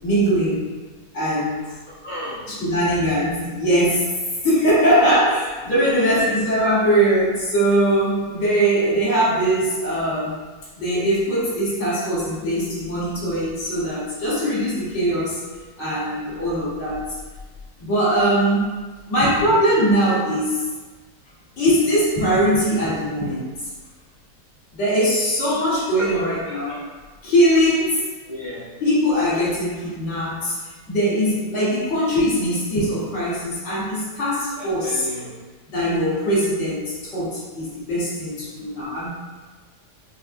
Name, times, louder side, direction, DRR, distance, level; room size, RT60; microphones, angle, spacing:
voice 1, 0.0-0.6 1.1-1.7 2.5-4.1 4.4-10.3 10.7-15.4 15.8-17.0 17.8-18.7 19.1-20.7 21.6-23.5 24.7-26.7 27.2-28.0 28.8-30.5 30.9-35.0 35.7-39.1, equal, 50° left, -9 dB, 1.4 m, -21 dB
voice 2, 1.9-2.5 5.7-6.3 26.0-26.8 28.2-28.7 34.5-35.3, equal, 65° left, -10 dB, 0.4 m, -33 dB
3.6 x 2.1 x 2.5 m, 1.3 s
omnidirectional pair, 1.7 m